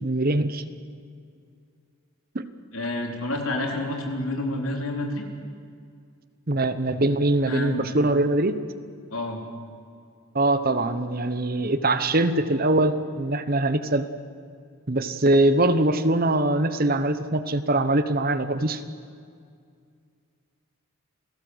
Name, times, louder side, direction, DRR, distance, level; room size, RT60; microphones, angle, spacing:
voice 1, 0.0-0.6 2.3-2.4 6.5-8.6 10.3-14.1 14.9-18.8, right 2 dB, 40° right, 11 dB, 1.0 m, -22 dB
voice 2, 2.7-5.2 7.5-7.9 9.1-9.4, left 1 dB, 70° left, 1 dB, 4.0 m, -29 dB
28.0 x 17.5 x 8.0 m, 2.3 s
head